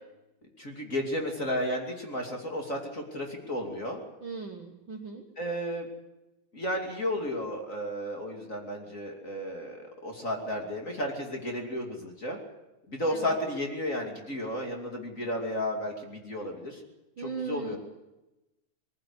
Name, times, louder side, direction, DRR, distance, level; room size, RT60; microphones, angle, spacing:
voice 1, 0.6-4.0 5.4-5.9 6.5-12.4 12.9-16.8 17.2-17.8, left 1 dB, 25° left, 1 dB, 2.8 m, -33 dB
voice 2, 4.2-5.3 13.1-13.3 17.2-17.8, right 5 dB, 50° right, 3 dB, 1.6 m, -38 dB
21.5 x 15.0 x 9.7 m, 1.0 s
omnidirectional pair, 3.5 m